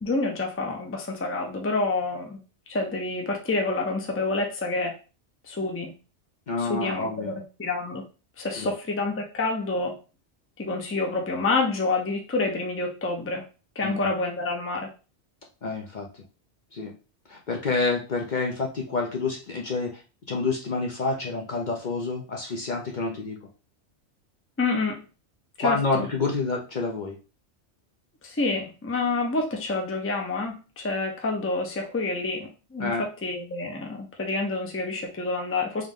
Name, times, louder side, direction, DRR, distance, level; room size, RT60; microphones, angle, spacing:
voice 1, 0.0-2.4 2.7-4.9 5.5-5.9 6.6-8.0 8.4-9.9 10.6-13.4 13.8-14.9 24.6-25.0 25.6-26.1 28.2-35.9, left 3 dB, 15° left, 2 dB, 0.6 m, -28 dB
voice 2, 6.5-7.3 8.6-8.7 13.8-14.1 15.6-16.1 16.7-16.9 17.3-19.9 20.3-23.4 25.6-27.1 32.8-33.0, left 3 dB, 50° left, 0 dB, 0.7 m, -28 dB
3.7 x 3.1 x 3.6 m, 0.34 s
omnidirectional pair, 1.2 m